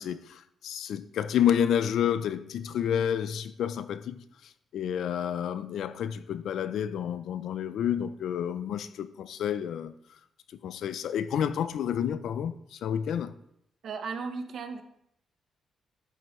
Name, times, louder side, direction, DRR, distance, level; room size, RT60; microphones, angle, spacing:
voice 1, 0.0-9.9 10.6-13.3, left 9 dB, 75° left, 0.5 m, -30 dB
voice 2, 13.8-14.8, right 5 dB, 55° right, 0.9 m, -35 dB
11.0 x 7.8 x 3.2 m
cardioid pair, 150°, 0 cm